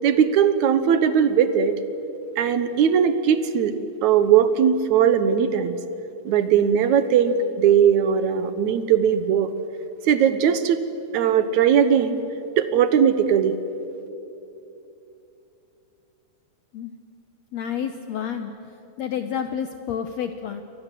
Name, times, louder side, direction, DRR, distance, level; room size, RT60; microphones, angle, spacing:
voice 1, 0.0-1.7 2.4-3.7 4.0-5.8 6.3-9.5 10.1-10.8 11.1-12.2 12.6-13.6, right 8 dB, 65° right, 11 dB, 2.1 m, -19 dB
voice 2, 17.5-18.5 19.0-20.6, left 8 dB, 70° left, 8 dB, 1.6 m, -29 dB
29.5 x 23.5 x 7.6 m, 2.8 s
omnidirectional pair, 4.1 m